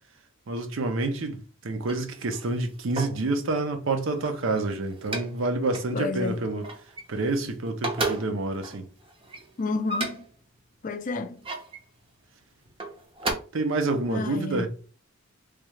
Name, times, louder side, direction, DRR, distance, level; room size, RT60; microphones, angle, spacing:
voice 1, 0.5-6.7 7.1-8.9 13.5-14.7, right 2 dB, 65° right, 0.6 m, -28 dB
sound 1, 1.7-3.3 3.9-5.4 5.7-6.0 6.3-7.4 7.7-10.4 11.1-11.8 12.7-13.3, right 2 dB, 25° right, 0.6 m, -34 dB
voice 2, 5.9-6.4 9.6-10.3 10.8-11.5 14.1-14.7, left 3 dB, 40° left, 0.4 m, -30 dB
3.3 x 2.3 x 3.1 m
head